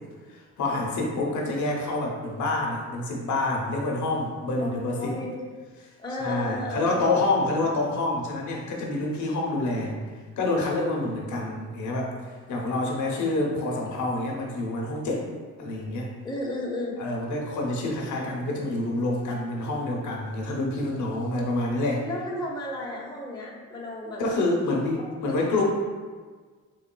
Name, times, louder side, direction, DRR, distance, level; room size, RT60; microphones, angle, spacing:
voice 1, 0.3-5.2 6.2-10.0 10.4-12.1 12.5-15.3 15.6-16.1 17.0-22.1 24.2-25.6, left 2 dB, 75° left, -1 dB, 0.8 m, -27 dB
voice 2, 4.6-5.3 6.0-6.9 16.2-17.0 22.1-24.3 25.2-25.3, left 1 dB, 15° left, -3 dB, 0.7 m, -33 dB
3.9 x 3.5 x 2.2 m, 1.5 s
cardioid pair, 90°, 30 cm